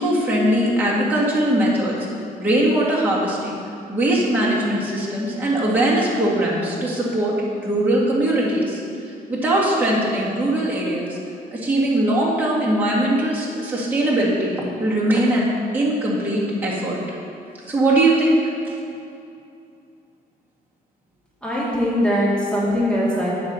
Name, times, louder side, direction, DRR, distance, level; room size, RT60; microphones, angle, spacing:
voice 1, 0.0-2.0 2.4-3.6 3.9-8.8 9.3-11.2 11.5-15.5 15.7-17.0 17.7-18.4, right 1 dB, 10° right, -7 dB, 1.9 m, -20 dB
voice 2, 21.4-23.3, equal, 5° left, -8 dB, 2.2 m, -21 dB
9.6 x 4.2 x 6.8 m, 2.5 s
cardioid pair, 105°, 16 cm